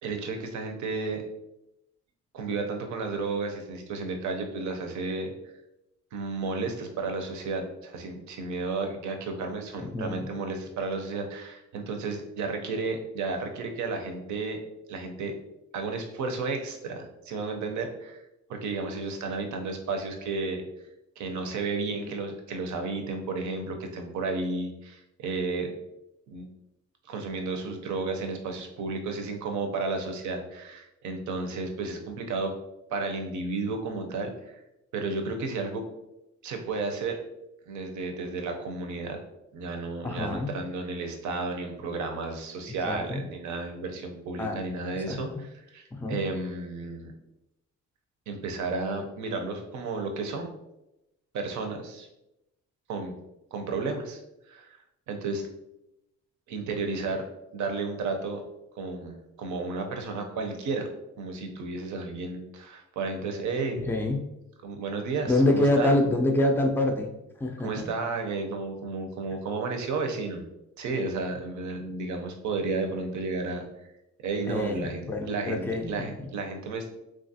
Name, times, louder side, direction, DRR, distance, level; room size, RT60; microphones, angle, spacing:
voice 1, 0.0-1.2 2.3-5.3 6.1-14.6 14.9-15.4 15.7-18.2 18.5-20.6 21.2-25.7 26.3-26.5 27.1-32.5 32.9-34.6 34.9-35.8 36.4-37.2 37.7-39.2 39.5-47.1 48.3-50.5 51.3-52.1 52.9-53.1 53.5-54.2 54.5-54.8 55.1-55.4 56.5-57.2 57.5-58.4 58.8-60.9 61.2-63.8 64.6-65.9 67.6-70.5 70.8-73.9 74.2-75.0 75.3-75.6 75.9-76.9, right 3 dB, 70° right, 4 dB, 0.6 m, -32 dB
voice 2, 9.8-10.3 21.9-22.1 40.0-40.5 42.8-43.2 44.4-44.6 44.9-45.4 45.9-46.2 63.8-64.2 65.3-67.1 67.4-67.9 74.5-76.3, left 1 dB, 5° left, 3 dB, 0.3 m, -26 dB
3.1 x 2.4 x 2.6 m, 0.89 s
cardioid pair, 90°, 30 cm